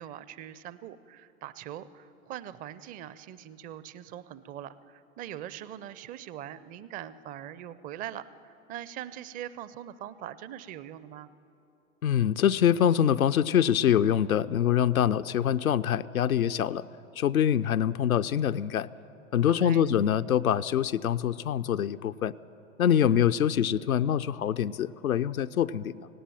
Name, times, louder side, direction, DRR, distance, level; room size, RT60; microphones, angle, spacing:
voice 1, 0.0-11.3 19.5-19.8 23.0-23.3, right 11 dB, 20° right, 16 dB, 0.5 m, -42 dB
voice 2, 12.0-16.8 17.2-18.9 19.3-22.3 22.8-26.1, left 9 dB, 75° left, 11 dB, 0.6 m, -25 dB
18.0 x 17.0 x 9.1 m, 2.8 s
figure-of-eight pair, 90°, 43 cm